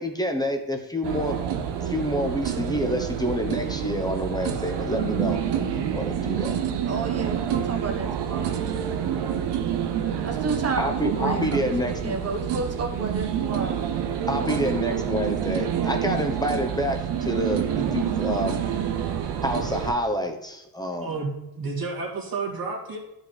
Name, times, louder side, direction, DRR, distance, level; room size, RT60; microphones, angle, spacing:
voice 1, 0.0-1.4 1.8-6.6 10.8-12.2 14.3-18.6 19.4-21.1, equal, 10° left, 4 dB, 1.0 m, -28 dB
sound 1, 1.0-19.9, right 9 dB, 85° right, 0.8 m, -27 dB
voice 2, 6.9-9.1 10.2-13.8 14.3-15.1, right 3 dB, 40° right, 5 dB, 1.3 m, -32 dB
voice 3, 21.0-23.0, right 4 dB, 60° right, -3 dB, 2.2 m, -31 dB
11.0 x 5.1 x 4.2 m, 0.92 s
cardioid pair, 100°, 40 cm